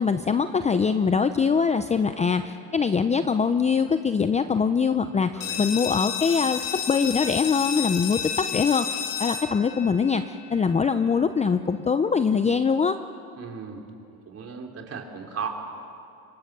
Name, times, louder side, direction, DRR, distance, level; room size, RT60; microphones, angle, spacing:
voice 1, 0.0-13.0, left 5 dB, 15° left, 10 dB, 0.6 m, -23 dB
voice 2, 5.3-5.7 13.3-13.8 14.3-15.5, right 6 dB, 35° right, 1 dB, 3.6 m, -36 dB
sound 1, 5.4-10.8, left 8 dB, 50° left, 2.9 m, -31 dB
25.5 x 23.0 x 6.8 m, 2.5 s
supercardioid pair, 110°, 43 cm